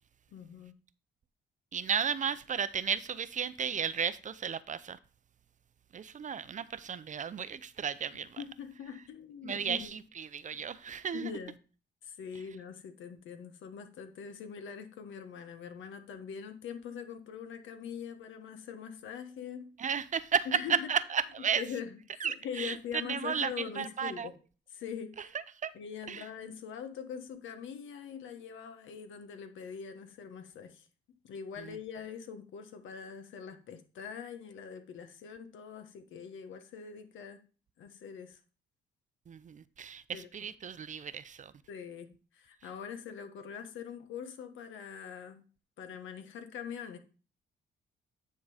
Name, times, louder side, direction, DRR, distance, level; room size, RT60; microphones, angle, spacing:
voice 1, 0.3-0.8 8.4-10.0 11.1-11.6 12.0-19.7 20.5-20.9 21.5-24.4 24.7-25.3 25.7-30.9 31.2-37.4 37.8-38.4 40.1-40.3 41.7-45.4 45.8-47.0, left 7 dB, 75° left, 1.2 m, -43 dB
voice 2, 1.7-5.0 5.9-8.4 9.4-11.3 19.8-21.6 22.2-22.8 23.1-24.3 25.2-25.3 25.6-25.7 26.1-26.3 31.6-31.8 39.3-41.5, right 7 dB, 40° right, 0.5 m, -34 dB
9.6 x 3.8 x 4.9 m
cardioid pair, 90°, 20 cm